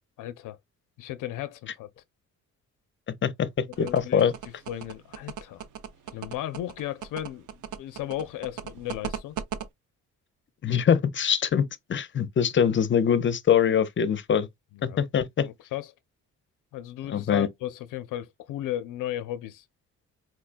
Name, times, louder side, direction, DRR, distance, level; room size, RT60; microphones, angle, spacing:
voice 1, 0.2-0.6 1.0-1.9 3.8-4.3 4.7-5.6 6.1-9.4 14.7-15.1 15.4-15.9 16.7-19.7, left 12 dB, 85° left, 0.5 m, -35 dB
sound 1, 3.7-9.6, right 9 dB, 75° right, 0.6 m, -36 dB
voice 2, 3.8-4.3 10.6-14.5 15.0-15.5 17.1-17.5, left 8 dB, 40° left, 0.5 m, -23 dB
4.3 x 2.2 x 2.4 m
cardioid pair, 105°, 31 cm